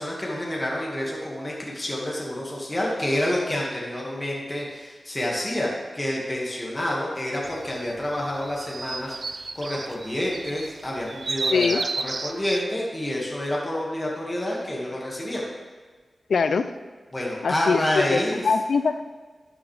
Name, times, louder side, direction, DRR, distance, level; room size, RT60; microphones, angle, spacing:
voice 1, 0.0-15.4 17.1-18.4, left 1 dB, 20° left, -4 dB, 1.9 m, -28 dB
sound 1, 7.4-12.6, right 3 dB, 55° right, 0.5 m, -32 dB
voice 2, 11.5-11.8 16.3-16.7 17.4-18.2 18.4-19.0, left 5 dB, 90° left, 11 dB, 0.4 m, -22 dB
12.0 x 7.3 x 3.4 m, 1.4 s
wide cardioid pair, 90°, 0 cm